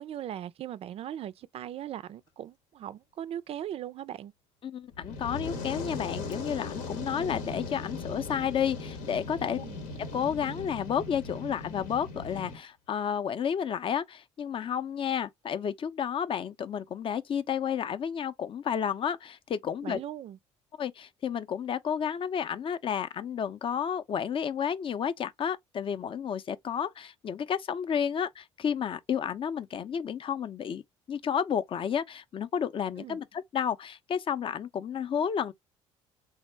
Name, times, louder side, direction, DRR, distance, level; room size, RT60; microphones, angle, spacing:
voice 1, 0.0-4.3 9.5-9.8 19.8-20.4 33.0-33.2, right 11 dB, 50° right, 0.4 m, -39 dB
voice 2, 4.6-9.6 10.1-20.0 20.8-30.8 31.1-35.5, left 8 dB, 40° left, 0.5 m, -31 dB
Fire, 4.9-12.6, left 3 dB, 80° left, 0.9 m, -38 dB
3.6 x 2.0 x 3.2 m
supercardioid pair, 75°, 13 cm